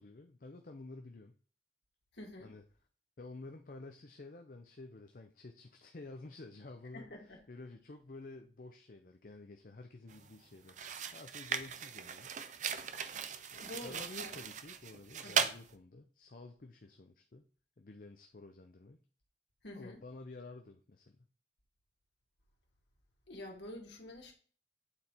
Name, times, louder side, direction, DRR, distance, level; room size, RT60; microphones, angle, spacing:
voice 1, 0.0-1.3 2.4-2.6 3.2-7.1 7.5-10.8 11.1-12.4 13.5-17.5 17.8-19.0 19.7-21.2, left 2 dB, 50° left, 5 dB, 0.6 m, -51 dB
voice 2, 2.1-2.5 6.9-7.4 13.6-14.3 15.2-15.5 19.6-20.0 23.3-24.3, left 1 dB, 70° left, 0 dB, 1.9 m, -48 dB
sound 1, 10.1-10.3 10.7-15.6, right 7 dB, 40° right, 0.5 m, -38 dB
8.7 x 4.2 x 4.3 m, 0.42 s
head